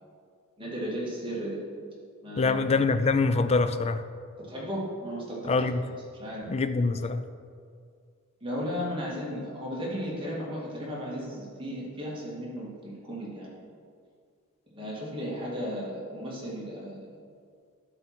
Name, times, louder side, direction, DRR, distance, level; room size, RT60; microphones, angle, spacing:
voice 1, 0.6-1.6 2.2-2.6 4.4-5.7 6.2-6.4 8.4-13.5 14.7-17.0, equal, 25° right, -6 dB, 2.1 m, -35 dB
voice 2, 2.4-4.0 5.5-5.8 6.5-7.2, left 3 dB, 30° left, 11 dB, 0.4 m, -24 dB
12.0 x 4.5 x 4.5 m, 2.2 s
head